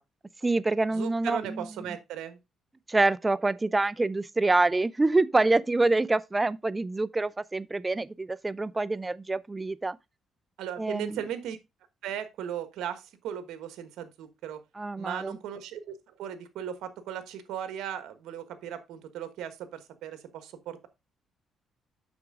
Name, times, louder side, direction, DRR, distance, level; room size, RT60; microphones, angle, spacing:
voice 1, 0.4-1.7 2.9-10.0 10.8-11.2 14.8-15.4, right 2 dB, 20° right, 0.5 m, -26 dB
voice 2, 0.9-2.4 10.6-11.6 12.0-14.6 15.0-20.9, right 9 dB, 85° right, 1.3 m, -37 dB
7.9 x 6.1 x 3.7 m
cardioid pair, 90°, 0 cm